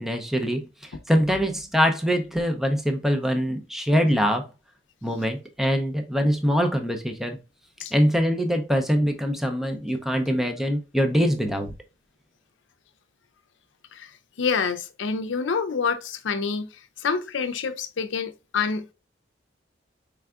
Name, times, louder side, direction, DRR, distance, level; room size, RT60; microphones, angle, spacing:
voice 1, 0.0-4.5 5.0-7.4 7.9-11.7, equal, ahead, 0.5 m, -23 dB
voice 2, 14.4-16.7 17.0-18.9, left 5 dB, 80° left, 0.5 m, -27 dB
4.6 x 3.4 x 2.3 m
head